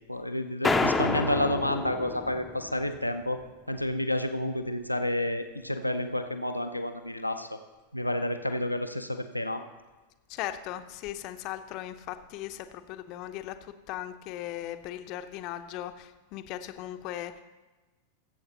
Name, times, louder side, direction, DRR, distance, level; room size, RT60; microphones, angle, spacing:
voice 1, 0.1-3.4 3.7-7.6 7.9-9.6, left 1 dB, 90° left, 7 dB, 0.6 m, -30 dB
sound 1, 0.6-3.1, left 3 dB, 10° left, 0.8 m, -29 dB
voice 2, 10.3-17.4, left 12 dB, 40° left, 9 dB, 0.7 m, -38 dB
21.5 x 8.0 x 3.0 m, 1.2 s
figure-of-eight pair, 90°, 0 cm